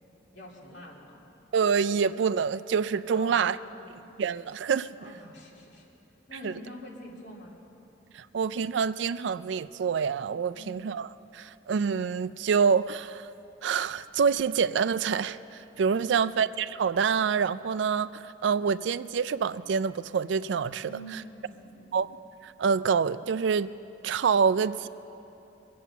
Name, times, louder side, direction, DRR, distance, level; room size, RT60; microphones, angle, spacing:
voice 1, 0.3-1.2 3.1-4.1 5.0-5.9 6.3-7.6 10.5-10.9 16.0-16.4 20.8-22.1, equal, 65° left, -3 dB, 2.8 m, -46 dB
voice 2, 1.5-3.6 4.2-4.9 6.4-6.5 8.1-11.1 11.3-13.3 13.6-21.2 21.9-22.1 22.4-23.7 24.0-24.9, right 6 dB, 70° right, 15 dB, 0.4 m, -26 dB
22.0 x 8.5 x 7.0 m, 2.9 s
head